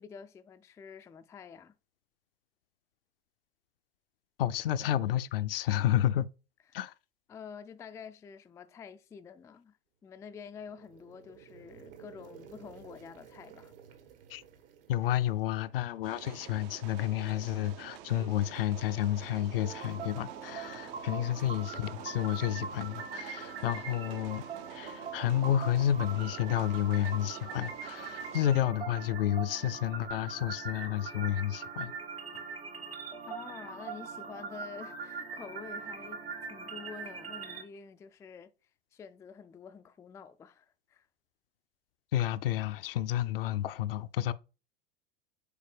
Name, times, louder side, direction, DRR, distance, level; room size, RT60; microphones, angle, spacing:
voice 1, 0.0-1.7 6.7-6.9 7.3-9.8 10.0-13.7 33.3-36.2 36.5-38.5 38.9-41.1, left 6 dB, 10° left, 0.3 m, -48 dB
voice 2, 4.4-6.3 6.7-6.9 14.3-14.4 14.9-24.4 24.7-31.9 42.1-44.3, left 12 dB, 65° left, 0.5 m, -30 dB
sound 1, 10.2-16.3, right 8 dB, 65° right, 1.3 m, -55 dB
sound 2, 16.0-28.5, right 12 dB, 50° right, 0.5 m, -48 dB
sound 3, 19.6-37.6, right 5 dB, 80° right, 1.6 m, -42 dB
6.8 x 4.3 x 3.3 m
figure-of-eight pair, 80°, 30 cm